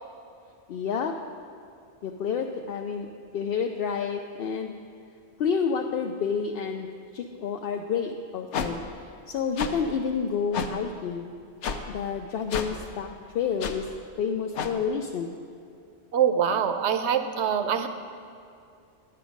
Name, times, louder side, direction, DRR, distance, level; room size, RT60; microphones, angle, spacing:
voice 1, 0.7-1.2 2.0-3.1 3.3-4.7 5.4-6.9 7.1-8.8 9.3-11.3 11.9-13.1 13.3-13.9 14.2-15.3, left 6 dB, 65° left, 3 dB, 0.7 m, -29 dB
sound 1, 8.5-8.7 9.6-9.7 10.5-10.7 11.6-11.8 12.5-12.7 13.6-13.7 14.5-14.7, left 6 dB, 85° left, 1.0 m, -29 dB
voice 2, 16.1-17.9, right 8 dB, 75° right, 9 dB, 0.9 m, -24 dB
10.5 x 7.8 x 5.1 m, 2.5 s
omnidirectional pair, 1.2 m